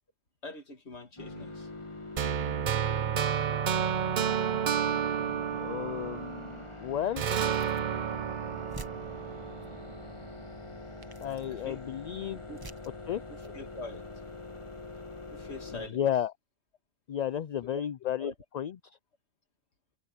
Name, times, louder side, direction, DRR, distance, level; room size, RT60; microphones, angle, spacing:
voice 1, 0.4-1.7 11.5-11.8 12.5-12.7 13.3-14.1 15.3-16.0 17.6-17.8 18.2-18.3, left 2 dB, 75° left, 2.5 m, -44 dB
sound 1, 1.2-15.9, left 2 dB, 25° left, 1.8 m, -44 dB
sound 2, 2.2-6.7 7.2-10.2, right 8 dB, 50° right, 0.7 m, -31 dB
voice 2, 5.6-7.4 11.2-12.4 13.1-13.2 15.9-16.3 17.1-18.7, left 10 dB, 55° left, 0.4 m, -33 dB
sound 3, 6.0-6.3 7.4-7.9 8.3-8.4 8.7-9.7 10.6-10.7 11.0-11.6 12.5-13.0 13.4-13.6, right 2 dB, 20° right, 1.3 m, -48 dB
omnidirectional pair, 1.1 m